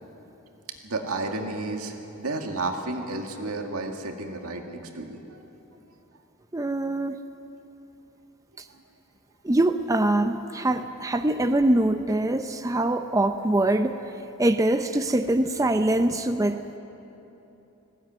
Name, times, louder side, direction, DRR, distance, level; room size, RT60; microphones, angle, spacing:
voice 1, 0.8-5.5, right 2 dB, 85° right, 3 dB, 2.1 m, -32 dB
voice 2, 6.5-7.2 9.4-14.0 14.4-16.6, right 1 dB, 15° right, 8 dB, 0.5 m, -23 dB
20.0 x 16.0 x 9.4 m, 3.0 s
head